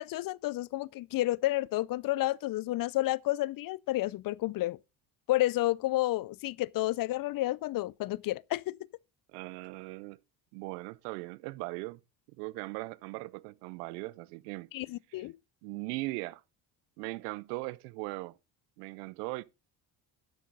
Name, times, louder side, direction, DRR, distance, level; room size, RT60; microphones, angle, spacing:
voice 1, 0.0-4.8 5.3-8.8 14.7-15.3, left 16 dB, 50° left, 0.4 m, -30 dB
voice 2, 9.3-10.2 10.5-12.0 12.4-14.7 15.1-15.3 15.6-16.4 17.0-18.4 18.8-19.4, right 22 dB, 90° right, 0.6 m, -39 dB
11.5 x 6.4 x 3.8 m
supercardioid pair, 70°, 46 cm